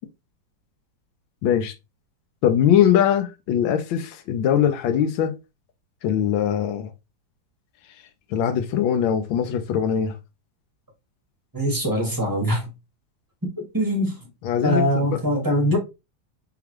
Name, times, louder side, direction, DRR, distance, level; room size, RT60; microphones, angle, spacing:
voice 1, 1.4-1.7 2.4-5.4 6.0-6.9 8.3-10.2 14.4-15.2, left 9 dB, 85° left, 1.4 m, -21 dB
voice 2, 11.5-12.7 13.7-14.1 14.6-15.8, equal, 15° right, 1.0 m, -22 dB
3.9 x 3.5 x 2.9 m
omnidirectional pair, 2.1 m